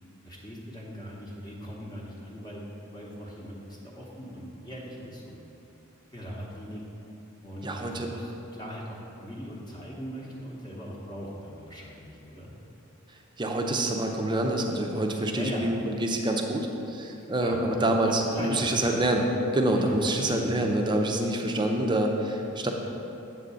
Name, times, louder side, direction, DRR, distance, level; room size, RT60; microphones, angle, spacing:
voice 1, 0.2-3.6 3.8-5.4 6.1-6.8 7.4-12.5 15.3-15.7 17.2-18.9 19.8-20.0 20.4-20.7, equal, 20° left, -4 dB, 0.9 m, -40 dB
voice 2, 7.6-8.1 13.4-22.7, right 1 dB, 20° right, 2 dB, 0.6 m, -26 dB
8.3 x 3.7 x 6.8 m, 2.9 s
head